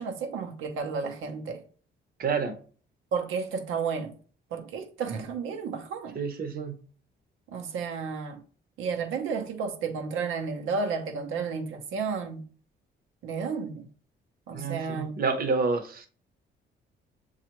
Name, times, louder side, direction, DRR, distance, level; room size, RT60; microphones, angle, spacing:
voice 1, 0.0-1.6 3.1-4.1 4.5-6.2 7.5-8.4 8.8-12.4 13.2-13.9 14.5-15.2, right 5 dB, 85° right, 0.8 m, -32 dB
voice 2, 2.2-2.6 6.1-6.8 14.5-16.1, right 4 dB, 50° right, 0.8 m, -28 dB
7.0 x 2.4 x 2.9 m
cardioid pair, 90°, 20 cm